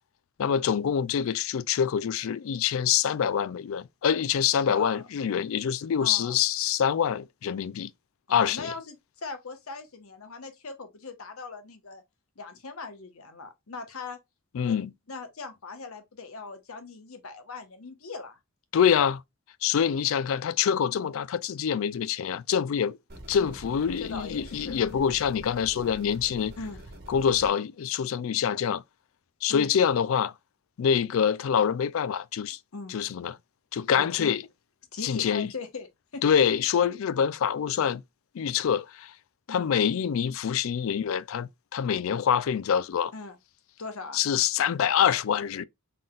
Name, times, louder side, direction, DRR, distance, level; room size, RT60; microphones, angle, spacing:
voice 1, 0.4-7.9 8.3-8.7 14.5-14.9 18.7-19.2 19.6-23.0 23.3-26.5 27.1-28.8 29.4-30.3 30.8-32.6 32.9-33.4 33.7-34.4 35.0-35.5 36.2-38.0 38.3-39.1 39.5-43.1 44.1-45.6, left 8 dB, 65° left, 0.3 m, -25 dB
voice 2, 4.7-5.0 6.0-6.4 8.3-12.0 12.4-14.2 14.6-14.8 15.1-18.4 23.4-23.5 24.0-24.8 26.6-26.8 29.5-29.7 32.7-33.0 33.9-34.3 34.9-35.9 36.1-36.2 39.5-39.7 43.1-43.4 43.8-44.2, left 3 dB, 85° left, 1.0 m, -40 dB
sound 1, 23.1-27.5, right 1 dB, 50° right, 1.2 m, -45 dB
3.8 x 3.8 x 2.3 m
head